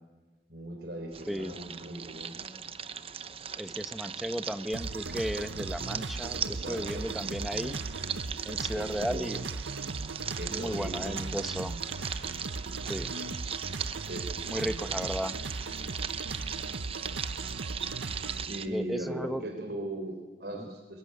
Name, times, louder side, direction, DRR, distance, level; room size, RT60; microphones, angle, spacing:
voice 1, 0.5-2.5 6.4-7.1 8.7-9.3 10.3-11.2 14.0-14.3 18.5-21.0, right 1 dB, 55° right, 4 dB, 3.8 m, -39 dB
sound 1, 1.1-18.7, right 7 dB, 30° right, 0.8 m, -38 dB
voice 2, 3.6-7.8 8.4-9.4 10.5-11.8 12.9-13.1 14.5-15.4 18.7-19.4 20.5-20.7, equal, ahead, 9 dB, 1.0 m, -35 dB
sound 2, 4.7-18.5, right 3 dB, 85° right, 0.9 m, -38 dB
24.0 x 22.0 x 9.7 m, 1.3 s
head